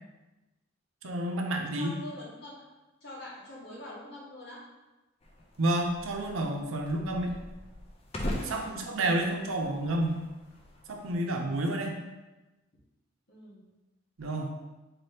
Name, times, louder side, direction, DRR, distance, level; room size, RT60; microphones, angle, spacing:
voice 1, 1.0-1.9 5.6-7.3 8.4-10.2 10.9-12.0 14.2-14.5, right 1 dB, 85° right, 2 dB, 0.6 m, -30 dB
voice 2, 1.7-2.6 3.0-4.6 8.7-9.2 13.3-13.6, left 2 dB, 55° left, -6 dB, 1.3 m, -45 dB
sound 1, 5.2-11.1, left 1 dB, 30° left, 0.4 m, -41 dB
4.1 x 2.8 x 3.3 m, 1.1 s
head